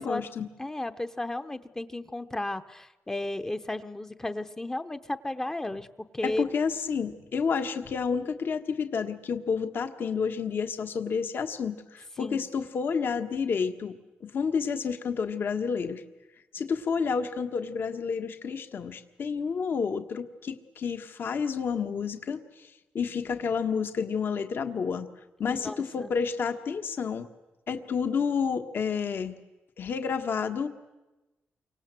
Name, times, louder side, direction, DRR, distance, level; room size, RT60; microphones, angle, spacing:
voice 1, 0.0-0.5 6.2-13.9 14.2-16.0 16.5-25.1 25.4-27.3 27.7-29.3 29.8-30.7, left 6 dB, 55° left, 7 dB, 1.5 m, -30 dB
voice 2, 0.6-5.9 6.1-6.5 12.2-12.5 25.5-26.1, left 1 dB, 15° left, 9 dB, 0.9 m, -34 dB
29.0 x 25.0 x 7.7 m, 1.1 s
wide cardioid pair, 135°, 4 cm